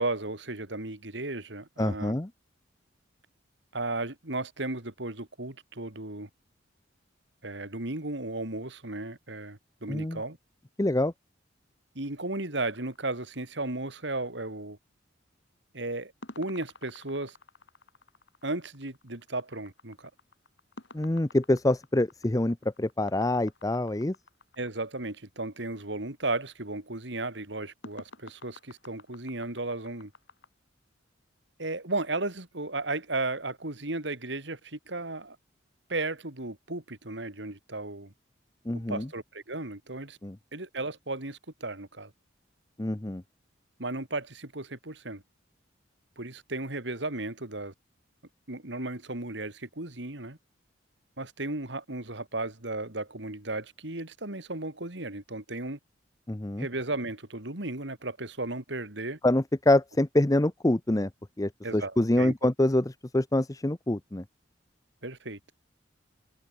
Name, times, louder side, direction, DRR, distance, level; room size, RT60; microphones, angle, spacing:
voice 1, 0.0-2.2 3.7-6.3 7.4-10.4 11.9-14.8 15.7-16.1 16.4-17.4 18.4-20.1 24.6-30.1 31.6-35.4 35.9-38.1 38.7-40.2 40.5-42.1 43.8-45.2 46.2-47.7 48.5-50.4 51.2-55.8 56.6-59.2 61.6-62.3 65.0-65.4, right 2 dB, 65° right, 3.2 m, -35 dB
voice 2, 1.8-2.3 9.9-10.2 10.8-11.1 20.9-24.1 38.7-39.1 40.2-40.4 42.8-43.2 56.3-56.7 59.2-61.1 61.4-64.2, left 1 dB, 20° left, 0.8 m, -26 dB
sound 1, 12.6-14.0 16.2-24.8 27.8-30.5, left 2 dB, 65° left, 3.3 m, -51 dB
head